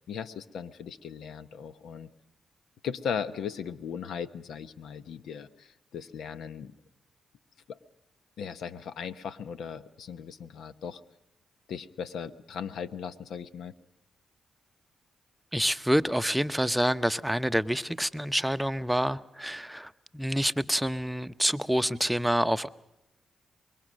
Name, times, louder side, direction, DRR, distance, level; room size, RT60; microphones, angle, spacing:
voice 1, 0.1-2.1 2.8-6.7 7.7-7.8 8.4-11.0 11.7-13.7, left 7 dB, 80° left, 12 dB, 1.0 m, -37 dB
voice 2, 15.5-22.7, equal, 5° right, 12 dB, 0.8 m, -27 dB
24.0 x 22.0 x 6.4 m, 0.91 s
supercardioid pair, 55°, 0 cm